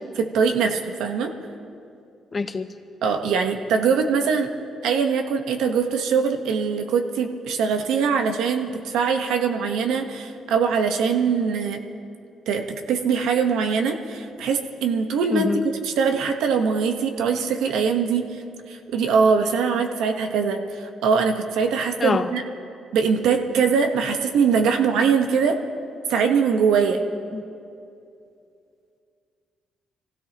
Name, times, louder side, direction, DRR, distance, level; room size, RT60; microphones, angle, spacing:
voice 1, 0.2-1.3 3.0-4.5 4.8-11.8 12.5-18.4 18.7-22.4 22.9-25.6 26.1-27.0, right 6 dB, 85° right, 5 dB, 1.2 m, -22 dB
voice 2, 2.3-2.7 15.3-15.6 22.0-22.3 27.3-27.4, left 4 dB, 35° left, 9 dB, 0.9 m, -24 dB
25.0 x 16.0 x 3.0 m, 2.5 s
cardioid pair, 90°, 0 cm